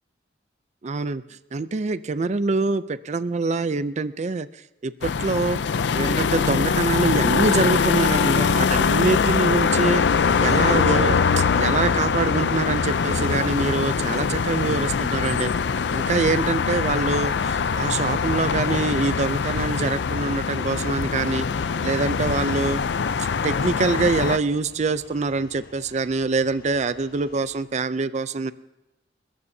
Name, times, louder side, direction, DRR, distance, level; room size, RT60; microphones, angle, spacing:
voice 1, 0.8-1.2 1.5-4.5 4.8-5.6 5.9-10.0 10.4-15.5 15.9-21.5 21.8-22.8 23.2-28.5, right 4 dB, 40° right, 14 dB, 0.4 m, -25 dB
sound 1, 5.0-24.4, left 5 dB, 80° left, 0.5 m, -23 dB
sound 2, 8.0-19.6, left 1 dB, 30° left, 4.8 m, -44 dB
sound 3, 8.6-27.6, left 2 dB, 60° left, 1.5 m, -46 dB
29.0 x 14.0 x 2.7 m, 0.97 s
head